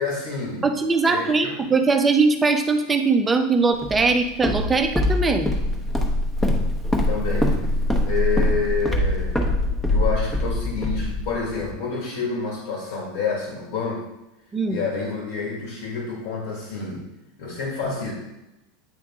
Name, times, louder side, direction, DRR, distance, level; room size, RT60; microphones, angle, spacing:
voice 1, 0.0-0.7 1.1-1.5 7.1-7.6 8.0-9.4 9.9-14.1 14.7-17.1 17.4-18.1, left 4 dB, 75° left, -2 dB, 1.9 m, -28 dB
voice 2, 0.6-5.5 14.5-14.8, right 4 dB, 15° right, 6 dB, 0.7 m, -21 dB
Walk footsteps, 3.8-11.7, left 1 dB, 10° left, 1.0 m, -23 dB
9.0 x 3.4 x 3.7 m, 0.95 s
supercardioid pair, 125°, 0 cm